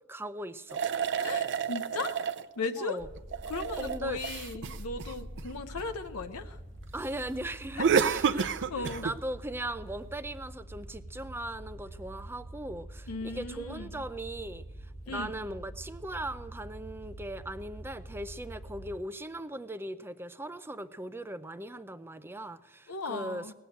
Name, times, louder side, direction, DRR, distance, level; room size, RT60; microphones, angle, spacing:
voice 1, 0.1-0.8 2.8-3.1 3.8-4.2 6.9-23.5, right 1 dB, 10° right, 12 dB, 0.5 m, -39 dB
sound 1, 0.7-2.5 3.2-5.8 7.8-9.2, right 6 dB, 55° right, 0.6 m, -29 dB
voice 2, 1.1-2.2 2.6-3.0 3.5-6.6 7.7-7.8 8.3-9.1 13.1-14.0 15.1-15.3 22.9-23.5, left 3 dB, 70° left, 7 dB, 0.8 m, -37 dB
sound 2, 3.0-19.0, right 1 dB, 30° left, 1.3 m, -45 dB
18.5 x 7.8 x 7.9 m, 1.1 s
head